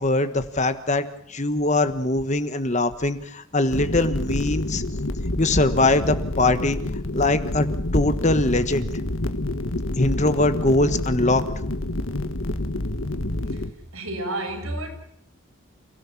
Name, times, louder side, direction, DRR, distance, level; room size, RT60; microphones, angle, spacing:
voice 1, 0.0-4.8 5.4-6.8 7.1-7.7 7.9-8.9 10.0-11.4, left 2 dB, 30° left, 10 dB, 1.3 m, -22 dB
sound 1, 3.7-13.7, left 1 dB, 65° left, 1.5 m, -28 dB
voice 2, 13.5-14.9, right 1 dB, 75° right, 4 dB, 6.8 m, -31 dB
29.5 x 17.0 x 7.3 m, 0.70 s
head